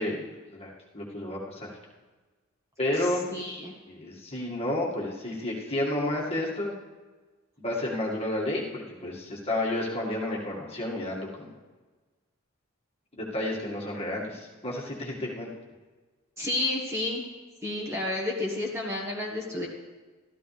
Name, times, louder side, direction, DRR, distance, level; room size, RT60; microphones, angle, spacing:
voice 1, 0.0-1.7 2.8-3.3 3.9-6.7 7.6-11.5 13.1-15.5, left 1 dB, 30° left, -3 dB, 2.0 m, -31 dB
voice 2, 3.0-3.7 16.4-17.2 17.6-19.7, left 2 dB, 15° right, -2 dB, 1.5 m, -31 dB
13.5 x 13.5 x 3.4 m, 1.3 s
head